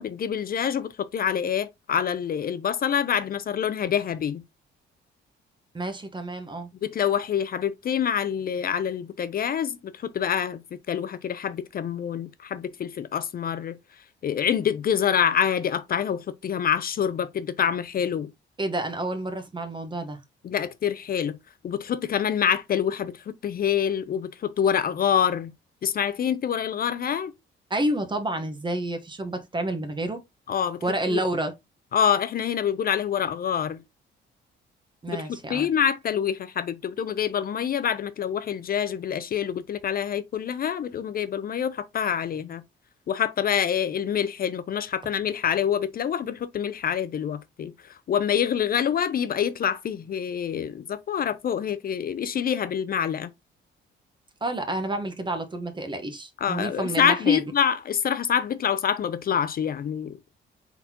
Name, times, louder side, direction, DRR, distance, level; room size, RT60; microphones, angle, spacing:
voice 1, 0.0-4.4 6.8-10.6 10.9-13.8 14.2-18.3 20.4-21.4 21.6-25.5 25.8-27.3 30.5-30.8 31.1-31.2 31.9-33.8 35.1-35.2 35.5-42.6 43.1-53.3 56.4-60.2, left 8 dB, 50° left, 0.5 m, -26 dB
voice 2, 5.7-6.7 18.6-20.2 27.7-30.2 30.8-31.5 35.0-35.7 54.4-57.4, right 1 dB, 25° right, 1.1 m, -29 dB
4.2 x 4.0 x 2.8 m
cardioid pair, 90°, 20 cm